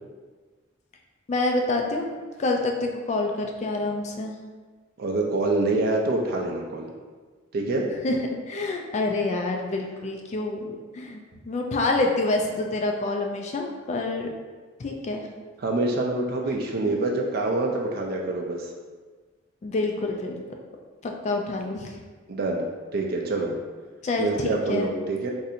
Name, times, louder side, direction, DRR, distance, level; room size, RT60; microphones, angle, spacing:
voice 1, 1.3-4.3 7.9-11.2 11.5-14.3 14.8-15.2 16.4-16.5 16.9-17.0 19.6-20.4 21.0-22.0 24.0-24.9, left 2 dB, 35° left, 2 dB, 0.3 m, -27 dB
voice 2, 5.0-6.9 7.5-7.9 15.6-18.7 22.3-22.6 22.9-23.5 24.2-25.3, right 2 dB, 50° right, 0 dB, 0.4 m, -26 dB
2.6 x 2.5 x 4.1 m, 1.4 s
head